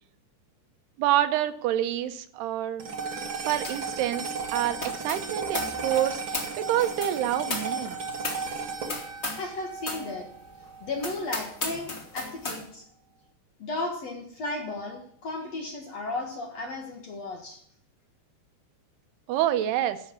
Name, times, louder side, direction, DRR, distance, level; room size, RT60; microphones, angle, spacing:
voice 1, 1.0-2.9 3.4-8.0 19.3-20.0, right 12 dB, 80° right, 10 dB, 2.7 m, -27 dB
sound 1, 2.8-11.3, right 4 dB, 55° right, 1.3 m, -35 dB
sound 2, 3.6-3.9 4.2-9.5 9.8-10.1 10.5-10.6 11.0-12.6, left 2 dB, 20° left, 1.7 m, -36 dB
voice 2, 9.3-10.3 10.6-12.8 13.6-17.6, left 2 dB, 55° left, 2 dB, 2.0 m, -35 dB
14.5 x 6.5 x 7.2 m, 0.66 s
omnidirectional pair, 4.9 m